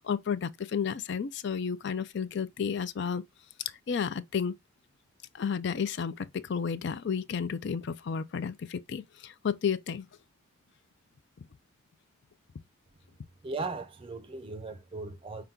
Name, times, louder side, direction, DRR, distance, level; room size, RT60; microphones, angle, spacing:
voice 1, 0.0-3.2 3.9-4.5 5.3-10.1, left 6 dB, 55° left, 0.4 m, -32 dB
voice 2, 13.4-15.4, right 3 dB, 25° right, 0.5 m, -37 dB
5.7 x 2.3 x 3.7 m
head